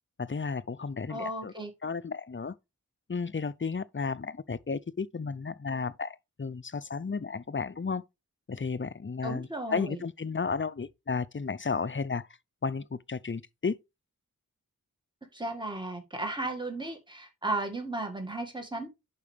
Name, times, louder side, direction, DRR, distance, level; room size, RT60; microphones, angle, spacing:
voice 1, 0.2-1.5 1.8-2.5 3.1-8.0 8.5-12.3 12.6-13.8, left 5 dB, 35° left, 0.5 m, -33 dB
voice 2, 1.1-1.7 9.2-10.0 15.3-18.9, right 2 dB, 10° right, 1.9 m, -35 dB
11.0 x 4.7 x 3.4 m
wide cardioid pair, 50°, 36 cm